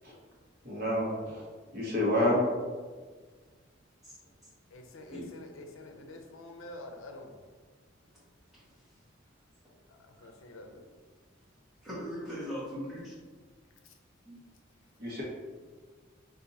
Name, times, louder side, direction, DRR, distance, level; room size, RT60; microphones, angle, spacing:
voice 1, 0.6-1.4 1.7-2.5 15.0-15.2, left 1 dB, 50° right, -5 dB, 1.1 m, -28 dB
voice 2, 4.7-7.3 9.9-10.8, left 2 dB, 80° left, 3 dB, 0.5 m, -47 dB
voice 3, 11.8-13.1 14.2-14.3, equal, ahead, -10 dB, 1.5 m, -39 dB
3.8 x 2.6 x 4.0 m, 1.5 s
head